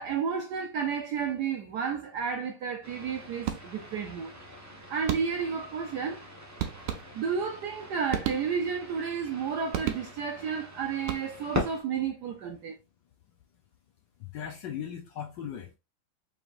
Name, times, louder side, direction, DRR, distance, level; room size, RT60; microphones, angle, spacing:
voice 1, 0.0-4.3 4.9-6.2 7.1-12.8, right 6 dB, 70° right, 1.0 m, -32 dB
sound 1, 2.8-11.8, left 1 dB, 25° right, 0.3 m, -41 dB
sound 2, 3.5-4.0 5.1-5.6 6.6-7.5 8.1-8.9 9.7-10.4 11.0-11.6, right 10 dB, 90° right, 1.5 m, -35 dB
voice 2, 14.2-15.8, left 9 dB, 70° left, 1.1 m, -38 dB
4.9 x 3.2 x 2.5 m
omnidirectional pair, 2.4 m